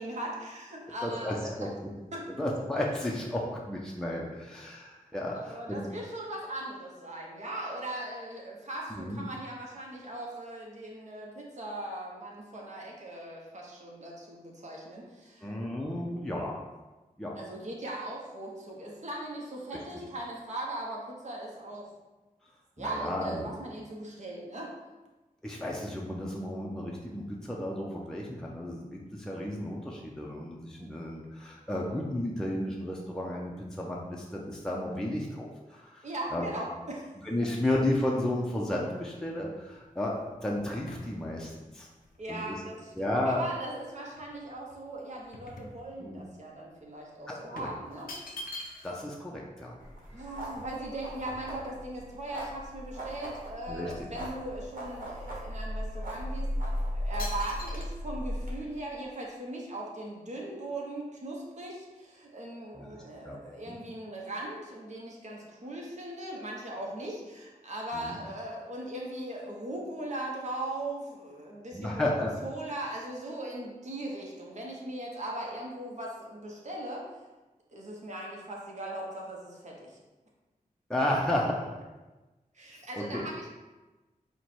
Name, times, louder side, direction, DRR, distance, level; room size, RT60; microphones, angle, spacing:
voice 1, 0.0-1.7 2.1-2.2 5.3-16.1 17.3-21.9 22.8-24.7 30.8-30.9 36.0-37.1 42.2-48.1 50.1-77.1 77.7-80.0 82.5-83.5, right 1 dB, 55° right, -2 dB, 0.9 m, -39 dB
voice 2, 1.0-1.7 2.4-5.9 8.9-9.2 15.4-16.5 17.2-17.3 22.8-23.5 25.4-36.5 37.2-41.9 42.3-42.6 43.0-43.4 46.0-46.2 47.3-47.7 48.8-49.8 53.7-53.9 62.7-62.9 63.2-63.4 63.7-63.8 67.9-68.2 71.7-72.3 80.9-81.7 83.0-83.2, left 1 dB, 5° left, -3 dB, 0.5 m, -33 dB
sound 1, 39.3-43.7 44.2-46.3 46.6-46.8 47.6-49.1 49.4-49.5 49.7-51.9 52.4-52.5 52.8-53.6 53.8-55.1 55.6-55.8 56.4-56.7 57.2-57.9, left 2 dB, 85° left, 0.6 m, -47 dB
sound 2, 49.8-58.5, equal, 75° right, 1.2 m, -37 dB
4.5 x 2.2 x 4.2 m, 1.2 s
wide cardioid pair, 80°, 14 cm